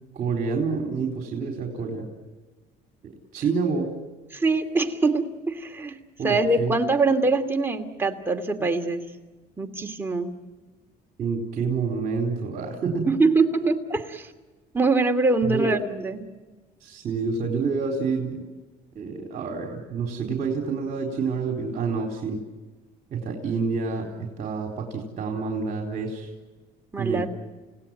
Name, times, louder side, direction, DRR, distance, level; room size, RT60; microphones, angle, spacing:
voice 1, 0.1-2.1 3.3-3.9 6.2-6.7 11.2-13.0 15.4-15.7 16.8-18.4 18.9-22.4 23.1-26.3 27.0-27.3, right 5 dB, 50° right, 1 dB, 4.0 m, -28 dB
voice 2, 4.3-6.0 6.2-9.0 9.6-10.3 13.1-14.3 14.7-16.2 26.9-27.3, right 3 dB, 15° right, 3 dB, 2.7 m, -23 dB
30.0 x 17.5 x 9.1 m, 1.2 s
cardioid pair, 110°, 17 cm